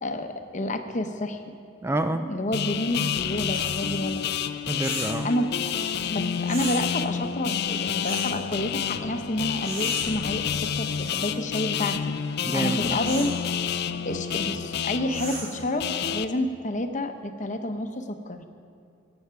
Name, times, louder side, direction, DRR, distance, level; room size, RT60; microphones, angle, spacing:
voice 1, 0.0-1.4 2.2-4.3 5.2-5.5 6.1-12.1 12.5-13.3 14.0-18.5, left 1 dB, 40° left, 7 dB, 0.8 m, -29 dB
voice 2, 1.8-2.3 4.7-5.3 12.5-13.0, right 1 dB, 15° right, 8 dB, 0.3 m, -27 dB
sound 1, 2.5-16.2, left 8 dB, 55° left, 0.4 m, -29 dB
sound 2, 3.5-3.7 4.8-5.2 6.5-6.8 8.0-8.4 9.6-10.1 11.0-11.4 13.0-13.4 15.1-15.6, right 3 dB, 75° right, 3.8 m, -37 dB
20.5 x 8.0 x 5.8 m, 2.5 s
head